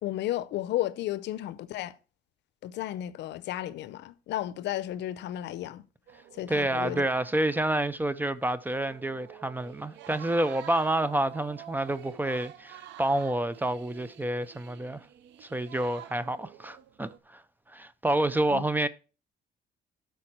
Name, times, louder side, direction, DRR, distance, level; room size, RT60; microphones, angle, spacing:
voice 1, 0.0-2.0 2.6-5.8 6.3-7.0 18.5-18.6, left 13 dB, 75° left, 0.6 m, -33 dB
sound 1, 6.1-7.8 8.0-8.1 8.5-17.2, right 12 dB, 80° right, 0.6 m, -49 dB
voice 2, 6.5-15.1 15.4-17.4 17.7-18.9, right 1 dB, 10° right, 0.4 m, -28 dB
12.5 x 4.7 x 4.3 m
cardioid pair, 140°, 18 cm